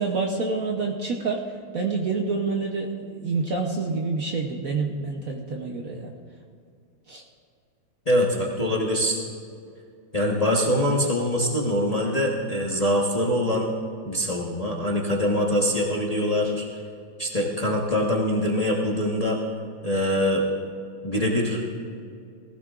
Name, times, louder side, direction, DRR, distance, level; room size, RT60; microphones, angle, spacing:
voice 1, 0.0-1.4 1.7-6.1 7.1-7.2, right 4 dB, 55° right, 0 dB, 1.1 m, -27 dB
voice 2, 8.1-9.1 10.1-13.7 14.0-16.7 17.2-19.4 19.8-20.4 21.0-21.6, equal, 25° left, -3 dB, 1.0 m, -23 dB
19.5 x 15.5 x 2.5 m, 2.3 s
omnidirectional pair, 2.2 m